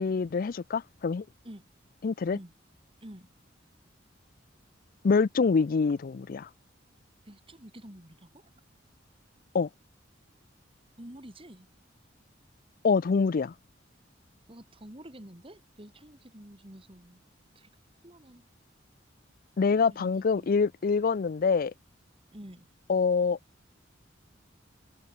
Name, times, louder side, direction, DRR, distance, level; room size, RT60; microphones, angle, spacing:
voice 1, 0.0-1.2 2.0-2.4 5.0-6.5 9.5-9.7 12.8-13.5 19.6-21.7 22.9-23.4, left 5 dB, 50° left, 0.4 m, -25 dB
voice 2, 7.2-8.5 11.0-11.7 14.5-17.2 17.5-17.7 18.0-18.5 19.7-20.5 22.3-22.7, right 1 dB, 30° right, 3.6 m, -48 dB
head